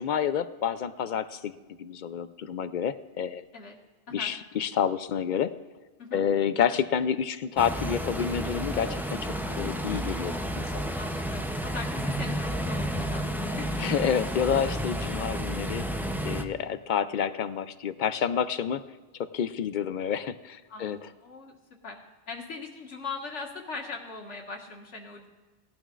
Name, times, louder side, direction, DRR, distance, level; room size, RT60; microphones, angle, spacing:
voice 1, 0.0-3.4 4.1-5.5 6.1-10.9 13.8-15.8 16.2-18.8 19.2-21.1, left 8 dB, 60° left, 13 dB, 0.5 m, -29 dB
sound 1, 7.6-16.5, equal, 5° right, 0.4 m, -31 dB
voice 2, 10.9-13.3 13.6-13.7 20.7-21.6 21.8-22.0 22.3-25.3, left 4 dB, 90° left, 0 dB, 1.9 m, -40 dB
18.5 x 12.0 x 2.5 m, 1.3 s
omnidirectional pair, 1.2 m